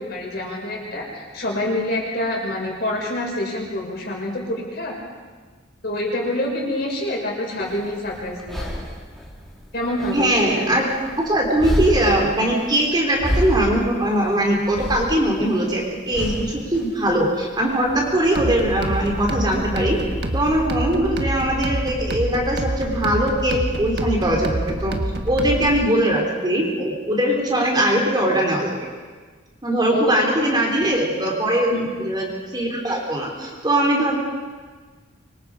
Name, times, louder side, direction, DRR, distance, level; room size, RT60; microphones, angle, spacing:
voice 1, 0.0-5.0 5.8-8.7 9.7-10.6 29.9-30.2 31.7-31.9, left 1 dB, 55° left, -2 dB, 6.0 m, -26 dB
sound 1, 7.6-20.7, equal, ahead, 3.1 m, -31 dB
voice 2, 10.1-10.9 11.2-20.0 20.3-25.0 25.2-28.8 29.6-34.2, right 1 dB, 20° right, -1 dB, 3.8 m, -21 dB
sound 2, 18.3-25.9, right 1 dB, 55° right, 1.6 m, -27 dB
25.5 x 23.0 x 5.0 m, 1.4 s
head